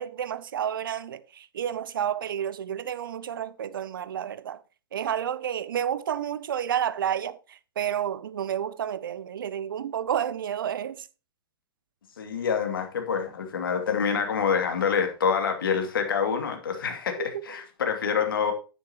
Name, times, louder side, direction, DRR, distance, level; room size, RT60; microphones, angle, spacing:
voice 1, 0.0-4.6 4.9-11.1 17.2-17.3, right 9 dB, 65° right, 0.8 m, -30 dB
voice 2, 12.2-18.5, left 6 dB, 65° left, 2.7 m, -26 dB
10.0 x 9.6 x 3.1 m
figure-of-eight pair, 110°, 12 cm